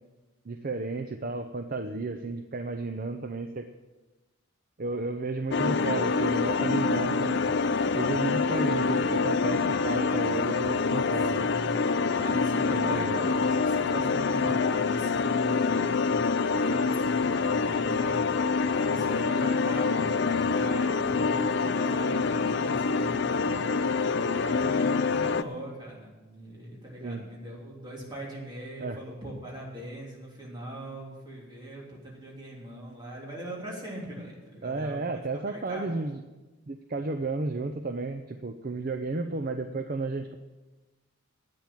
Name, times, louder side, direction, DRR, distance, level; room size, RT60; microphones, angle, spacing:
voice 1, 0.5-3.7 4.8-7.4 8.0-11.4 12.7-13.2 27.0-27.3 28.8-29.0 34.6-36.2 36.7-40.4, right 3 dB, 40° right, 7 dB, 0.5 m, -33 dB
sound 1, 5.5-25.4, left 4 dB, 55° left, 0.5 m, -26 dB
voice 2, 11.4-11.7 12.1-18.1 18.7-35.2 35.5-35.9, right 1 dB, 20° right, -4 dB, 3.3 m, -40 dB
10.5 x 8.7 x 7.6 m, 1.1 s
head